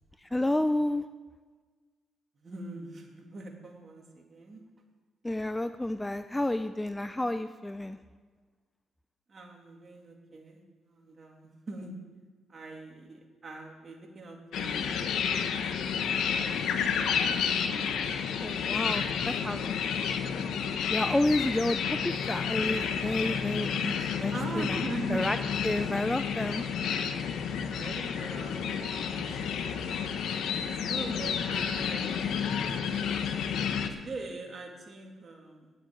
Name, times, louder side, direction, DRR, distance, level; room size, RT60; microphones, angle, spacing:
voice 1, 0.2-1.1 5.2-8.0 18.4-19.8 20.9-24.8 25.1-25.4 25.6-26.6, left 1 dB, 10° left, 11 dB, 0.4 m, -30 dB
voice 2, 2.4-4.6 9.3-11.9 12.5-15.5 15.8-16.0 16.3-16.8 17.0-18.0 18.5-19.3 21.2-21.4 24.3-25.3 27.6-29.8 30.8-32.3 33.9-35.7, right 3 dB, 40° right, 1 dB, 2.7 m, -42 dB
sound 1, 14.5-33.9, left 7 dB, 75° left, 0.9 m, -31 dB
9.5 x 8.0 x 9.3 m, 1.4 s
cardioid pair, 90°, 0 cm